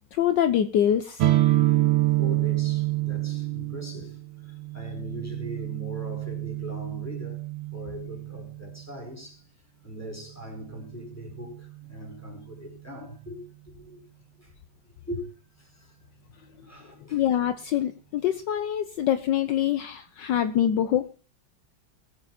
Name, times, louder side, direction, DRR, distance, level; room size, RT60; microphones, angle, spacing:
voice 1, 0.1-1.3 17.1-21.1, left 10 dB, 70° left, 1.4 m, -25 dB
sound 1, 1.2-8.8, right 16 dB, 85° right, 1.7 m, -27 dB
voice 2, 2.2-4.2 4.4-7.4 7.7-9.4 9.8-13.4 13.7-14.0 14.4-14.5 15.1-15.2 15.6-15.9 16.6-17.2, equal, 5° left, 4.9 m, -40 dB
20.5 x 8.8 x 4.2 m
omnidirectional pair, 2.1 m